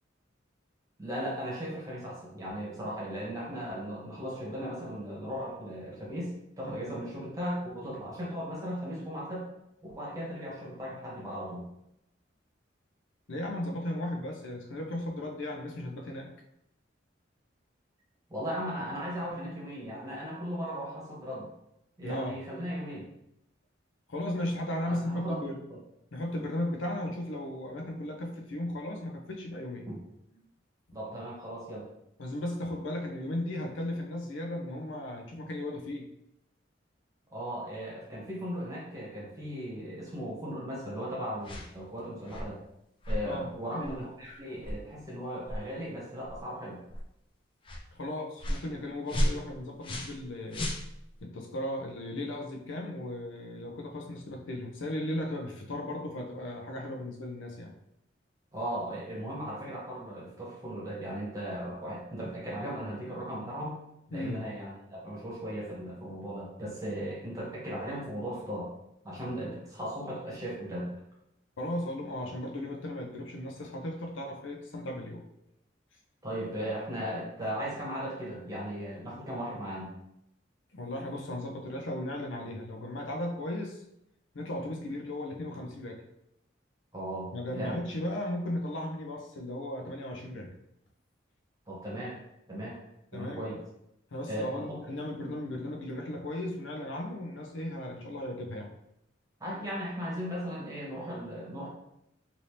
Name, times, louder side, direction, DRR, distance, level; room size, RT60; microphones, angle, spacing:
voice 1, 1.0-9.5 9.8-11.6 18.3-21.5 22.0-23.0 24.8-25.8 29.9-30.0 30.9-31.9 37.3-42.6 43.1-46.8 58.5-63.8 64.1-68.7 69.0-70.9 76.2-79.9 86.9-87.8 91.7-92.2 92.5-92.8 93.1-93.6 94.2-94.8 99.4-101.7, equal, 20° right, -5 dB, 1.0 m, -37 dB
voice 2, 13.3-16.3 22.0-22.4 24.1-25.6 26.1-29.8 32.2-36.1 43.2-44.0 47.9-50.7 51.2-57.7 64.1-64.4 71.6-75.2 80.7-83.8 84.3-86.0 87.3-90.5 93.1-93.4 94.1-98.7, left 1 dB, 75° left, 2 dB, 0.6 m, -36 dB
sound 1, 41.4-41.7 42.3-42.5 43.0-43.2 43.8-44.0 44.6-44.8 45.4-45.6 46.3-46.4 46.9-47.1 47.6-47.8 48.4-48.7 49.1-50.2 50.5-51.2, equal, 25° left, 0.4 m, -33 dB
2.9 x 2.6 x 3.3 m, 0.80 s
head